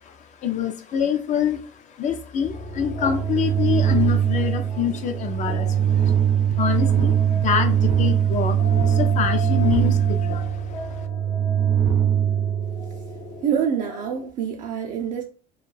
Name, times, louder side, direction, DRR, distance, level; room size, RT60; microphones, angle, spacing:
voice 1, 0.4-1.6 2.0-6.1 6.6-11.0, left 8 dB, 45° left, 0.5 m, -26 dB
sound 1, 2.5-14.3, left 5 dB, 75° left, 0.9 m, -38 dB
sound 2, 2.6-13.2, right 9 dB, 90° right, 0.7 m, -22 dB
voice 2, 13.4-15.2, right 8 dB, 50° right, 0.4 m, -26 dB
2.3 x 2.1 x 3.1 m
supercardioid pair, 100°, 17 cm